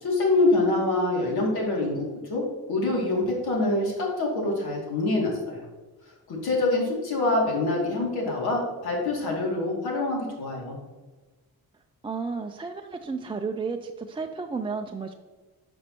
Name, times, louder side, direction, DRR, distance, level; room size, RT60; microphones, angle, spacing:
voice 1, 0.0-5.6 6.3-10.8, left 2 dB, 85° left, -2 dB, 2.5 m, -25 dB
voice 2, 12.0-15.1, right 4 dB, 15° right, 4 dB, 0.3 m, -32 dB
10.5 x 5.4 x 2.9 m, 1.3 s
cardioid pair, 115°, 38 cm